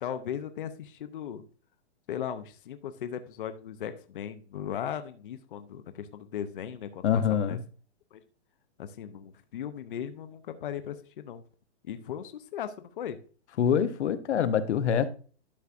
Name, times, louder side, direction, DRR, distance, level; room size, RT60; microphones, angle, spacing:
voice 1, 0.0-1.4 2.1-7.6 8.1-8.2 8.8-11.4 11.8-13.2, left 9 dB, 50° left, 0.7 m, -37 dB
voice 2, 7.0-7.6 13.6-15.1, left 8 dB, 85° left, 0.9 m, -25 dB
12.0 x 5.8 x 2.5 m
hypercardioid pair, 180°, 34 cm